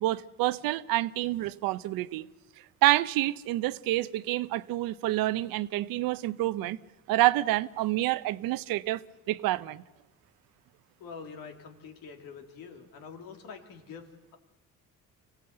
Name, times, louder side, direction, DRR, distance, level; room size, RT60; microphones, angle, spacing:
voice 1, 0.0-2.3 2.8-6.8 7.1-9.0 9.3-9.8, right 17 dB, 85° right, 0.7 m, -28 dB
voice 2, 11.0-14.4, left 5 dB, 85° left, 2.7 m, -45 dB
25.0 x 16.5 x 7.9 m
cardioid pair, 80°, 34 cm